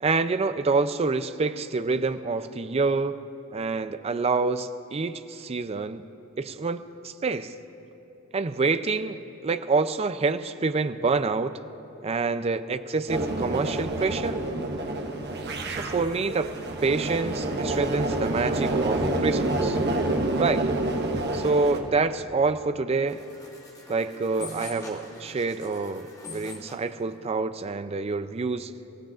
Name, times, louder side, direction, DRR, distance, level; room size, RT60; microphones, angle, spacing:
voice 1, 0.0-3.2 3.5-6.0 6.4-7.5 8.3-11.6 12.0-14.4 15.7-16.5 16.8-19.8 20.4-20.6 21.3-23.2 23.9-28.7, right 4 dB, 30° right, 12 dB, 0.4 m, -27 dB
sound 1, 13.1-21.8, right 2 dB, 55° right, 1.2 m, -28 dB
sound 2, 23.1-26.9, left 3 dB, 15° left, 1.7 m, -43 dB
25.5 x 15.5 x 2.5 m, 2.9 s
head